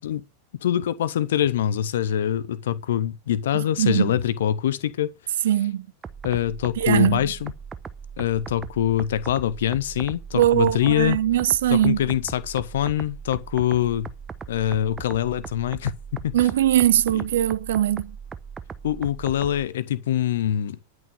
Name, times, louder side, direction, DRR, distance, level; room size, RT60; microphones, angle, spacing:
voice 1, 0.6-5.1 6.2-7.5 8.2-11.2 11.7-14.1 14.5-15.9 16.2-16.3 17.1-17.2 18.8-20.8, left 11 dB, 60° left, 1.0 m, -24 dB
voice 2, 3.5-4.1 5.4-5.9 6.8-7.2 10.3-12.0 16.3-18.2, right 12 dB, 60° right, 0.8 m, -21 dB
sound 1, 6.0-19.7, right 6 dB, 20° right, 0.9 m, -39 dB
10.5 x 6.4 x 7.3 m
figure-of-eight pair, 90°, 0 cm